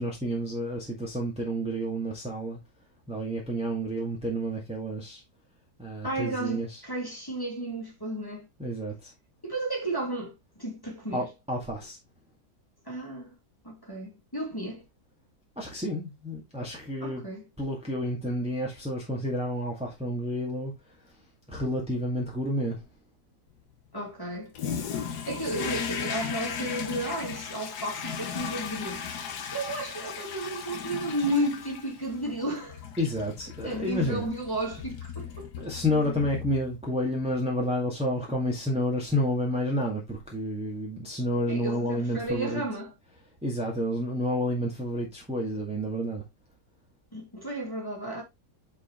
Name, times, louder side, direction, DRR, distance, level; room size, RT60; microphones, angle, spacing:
voice 1, 0.0-2.6 3.1-5.2 5.8-6.8 8.6-9.1 11.1-12.0 15.6-17.2 17.6-20.7 21.0-21.1 21.5-22.8 33.0-34.3 35.6-42.6 43.4-46.2, equal, 5° right, 1.8 m, -30 dB
voice 2, 6.0-8.5 9.4-11.3 12.9-13.3 13.6-14.8 17.0-17.4 23.9-24.5 25.3-29.0 29.5-32.9 33.6-35.7 41.5-42.9 47.1-48.2, right 1 dB, 15° left, 2.4 m, -33 dB
Toilet flush, 24.5-36.9, left 7 dB, 80° left, 1.6 m, -36 dB
8.1 x 4.9 x 3.0 m
omnidirectional pair, 1.7 m